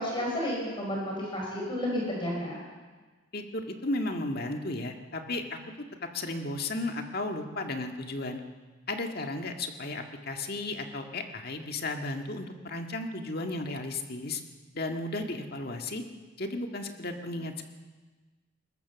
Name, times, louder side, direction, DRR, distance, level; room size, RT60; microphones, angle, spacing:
voice 1, 0.0-2.6, left 1 dB, 25° left, -2 dB, 4.9 m, -31 dB
voice 2, 3.3-5.6 6.0-8.4 8.9-14.4 14.7-16.0 16.4-17.6, left 2 dB, 50° left, 4 dB, 1.9 m, -34 dB
21.5 x 19.5 x 7.0 m, 1.3 s
head